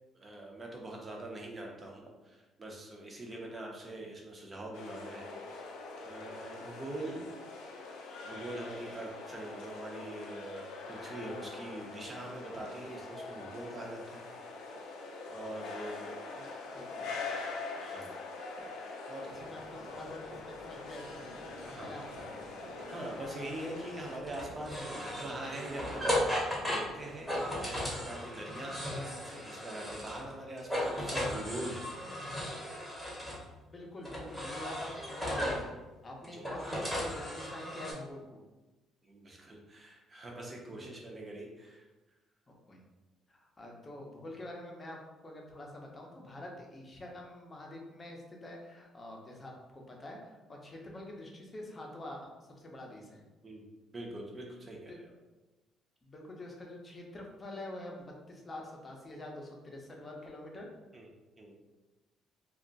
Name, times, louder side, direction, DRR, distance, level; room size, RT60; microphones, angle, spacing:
voice 1, 0.1-5.8 6.0-7.3 8.2-14.2 15.3-16.2 17.8-18.1 19.1-19.4 21.6-21.9 22.9-31.8 36.2-36.4 39.0-41.8 53.4-53.7 53.9-55.1 60.9-61.1 61.4-61.6, right 1 dB, 25° right, -1 dB, 0.7 m, -43 dB
sound 1, 4.7-24.2, left 3 dB, 85° left, 0.4 m, -44 dB
voice 2, 16.7-17.2 19.3-22.4 33.6-35.7 36.0-38.4 40.7-40.9 42.7-42.8 43.3-52.3 52.6-53.2 54.9-55.0 56.0-60.7, left 1 dB, 25° left, 0 dB, 0.7 m, -46 dB
sound 2, 19.2-28.1, right 2 dB, 85° right, 0.5 m, -52 dB
sound 3, 24.3-30.3 30.6-33.4 34.0-35.7 36.2-37.9, equal, ahead, 0.9 m, -36 dB
2.3 x 2.1 x 3.8 m, 1.1 s
cardioid pair, 110°, 0 cm